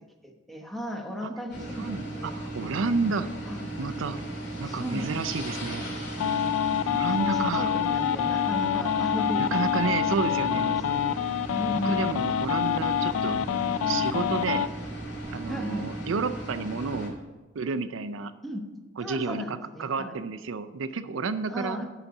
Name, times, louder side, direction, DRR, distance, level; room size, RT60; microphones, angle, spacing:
voice 1, 0.2-2.4 3.5-3.6 4.6-5.2 7.0-9.5 10.1-10.4 10.7-11.1 11.6-12.4 15.4-15.9 18.4-18.6 19.0-20.2 21.5-21.9, equal, ahead, 1 dB, 1.0 m, -36 dB
sound 1, 1.5-17.1, right 1 dB, 55° left, 2.8 m, -36 dB
voice 2, 1.8-3.3 3.8-4.2 4.6-5.9 6.9-7.8 9.4-10.8 11.7-13.4 13.9-14.7 15.3-17.1 17.5-18.3 19.0-21.8, right 4 dB, 70° right, 12 dB, 0.5 m, -31 dB
sound 2, 6.2-14.7, left 9 dB, 90° left, 0.3 m, -26 dB
11.5 x 4.1 x 7.0 m, 1.2 s
head